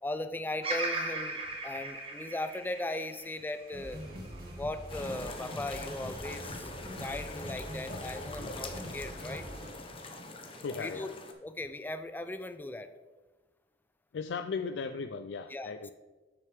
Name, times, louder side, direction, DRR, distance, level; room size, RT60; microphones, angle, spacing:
voice 1, 0.0-4.0 4.6-6.7 7.0-9.4 10.8-11.1 11.4-12.9 15.5-15.7, left 1 dB, 10° left, 10 dB, 0.3 m, -38 dB
Bird vocalization bird call bird song, 0.6-4.8 5.4-6.1, right 2 dB, 35° right, 1.5 m, -38 dB
sound 1, 3.7-9.7, equal, 60° right, 2.0 m, -44 dB
sound 2, 4.9-11.3, left 2 dB, 30° left, 0.9 m, -43 dB
voice 2, 10.6-11.1 14.1-15.9, left 5 dB, 85° left, 9 dB, 0.4 m, -37 dB
8.9 x 6.4 x 3.4 m, 1.2 s
head